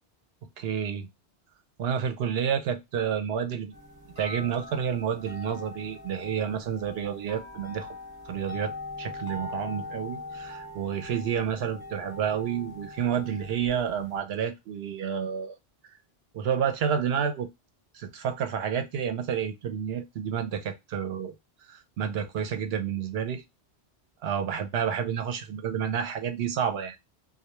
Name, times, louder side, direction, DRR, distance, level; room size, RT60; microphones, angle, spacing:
voice 1, 0.6-1.1 1.8-3.7 4.2-8.0 8.3-15.6 16.3-17.5 17.9-21.3 21.6-23.4 24.2-27.0, right 8 dB, 70° right, 0.8 m, -30 dB
sound 1, 3.7-14.2, left 2 dB, 15° right, 0.9 m, -42 dB
2.2 x 2.2 x 2.9 m
omnidirectional pair, 1.1 m